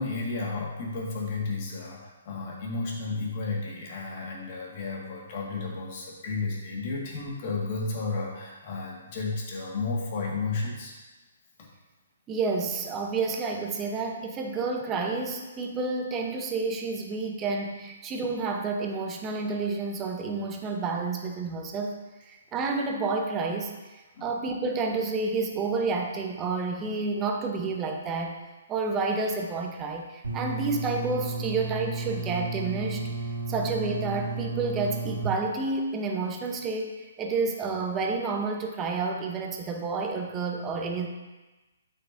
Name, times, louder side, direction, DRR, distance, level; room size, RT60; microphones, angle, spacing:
voice 1, 0.0-11.0 11.6-11.7 24.1-24.3, left 3 dB, 45° left, -2 dB, 1.7 m, -32 dB
voice 2, 12.3-22.0 22.3-23.7 24.2-28.4 28.7-33.2 33.5-41.1, right 4 dB, 20° right, 3 dB, 0.8 m, -30 dB
sound 1, 30.2-35.2, right 3 dB, 75° right, 2.1 m, -33 dB
8.0 x 5.8 x 2.6 m, 1.2 s
figure-of-eight pair, 130°, 0 cm